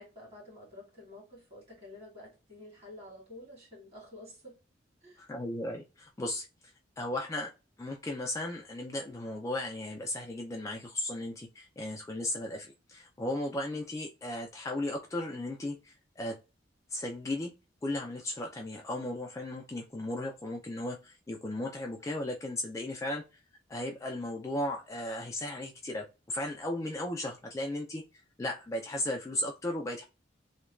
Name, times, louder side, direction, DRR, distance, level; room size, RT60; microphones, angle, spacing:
voice 1, 0.0-4.6 5.0-5.2, left 1 dB, 35° right, 1.6 m, -50 dB
voice 2, 5.2-6.5 7.0-7.5 7.8-16.4 16.9-17.5 17.8-23.2 23.7-28.0 28.4-30.0, left 1 dB, 15° left, 0.3 m, -36 dB
3.0 x 2.2 x 2.3 m
head